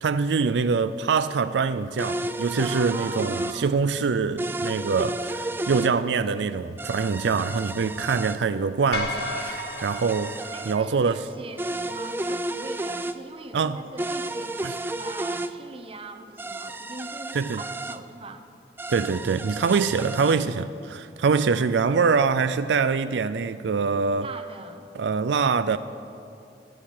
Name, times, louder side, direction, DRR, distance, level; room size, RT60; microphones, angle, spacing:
voice 1, 0.0-11.2 13.5-13.8 14.6-14.8 17.3-17.6 18.9-24.3 24.9-25.8, right 5 dB, 80° right, 0.4 m, -24 dB
sound 1, 2.0-3.6 4.4-5.9 6.8-8.4 9.2-10.8 11.6-13.2 14.0-15.5 16.4-18.0 18.8-20.4, right 2 dB, 10° right, 0.4 m, -32 dB
voice 2, 2.5-3.8 7.9-8.2 10.5-14.5 15.0-18.4 21.4-21.7 24.2-24.9, right 3 dB, 30° right, 0.9 m, -41 dB
sound 2, 8.9-11.3, left 2 dB, 65° left, 1.9 m, -33 dB
11.5 x 10.5 x 9.0 m
head